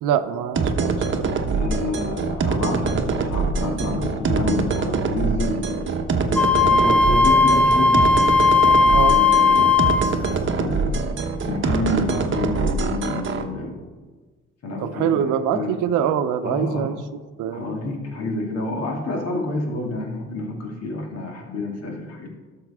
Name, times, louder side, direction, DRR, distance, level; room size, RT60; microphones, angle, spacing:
voice 1, 0.0-1.3 8.9-9.2 14.8-17.0 17.4-17.6, right 9 dB, 90° right, 10 dB, 0.7 m, -24 dB
sound 1, 0.6-13.4, right 4 dB, 40° right, 1.0 m, -24 dB
voice 2, 1.5-5.8 6.2-8.2 9.0-9.7 10.2-10.3 10.6-10.9 11.2-13.7 14.6-15.7 16.4-16.9 17.5-22.3, left 2 dB, 55° left, 0 dB, 2.3 m, -28 dB
Wind instrument woodwind instrument, 6.4-10.1, left 4 dB, 5° left, 0.8 m, -16 dB
12.0 x 6.6 x 3.6 m, 1.3 s
cardioid pair, 90°, 30 cm